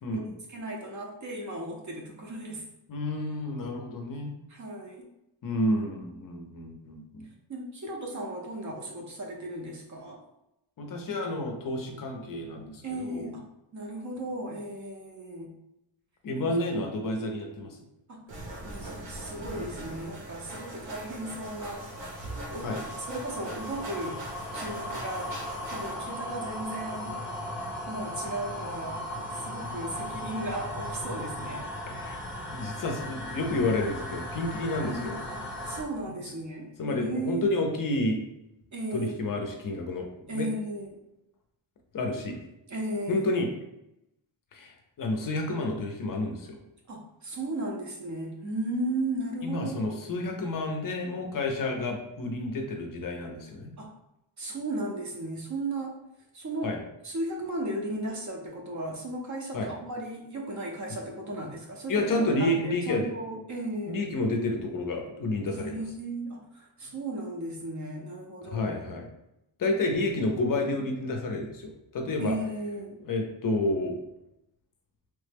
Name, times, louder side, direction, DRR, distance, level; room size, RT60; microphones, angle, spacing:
voice 1, 0.1-2.6 4.5-5.0 7.5-10.2 12.8-13.4 13.7-15.5 16.3-16.4 18.1-21.9 22.5-22.7 23.0-24.2 24.5-25.3 25.7-27.1 27.9-29.0 29.3-31.7 34.8-37.5 38.7-39.1 40.3-41.0 42.7-43.3 46.9-49.9 53.8-53.9 54.4-56.0 56.3-56.7 57.0-64.1 65.5-68.7 72.2-73.0, right 1 dB, 40° right, 0 dB, 0.5 m, -35 dB
voice 2, 2.9-4.3 5.4-7.3 10.8-13.3 16.2-17.8 22.6-22.8 31.9-32.2 32.5-35.2 36.0-36.1 36.8-38.2 38.9-40.5 41.9-42.4 43.1-43.5 44.5-46.6 49.4-53.7 56.6-56.8 59.5-59.7 61.9-63.1 63.9-65.8 68.4-69.1 69.6-72.3 73.0-73.9, left 2 dB, 45° left, 2 dB, 0.4 m, -30 dB
sound 1, 18.3-25.9, right 1 dB, 70° right, 1.0 m, -41 dB
sound 2, 20.3-35.8, left 1 dB, 5° left, 0.8 m, -37 dB
3.1 x 2.1 x 3.3 m, 0.86 s
wide cardioid pair, 170°, 46 cm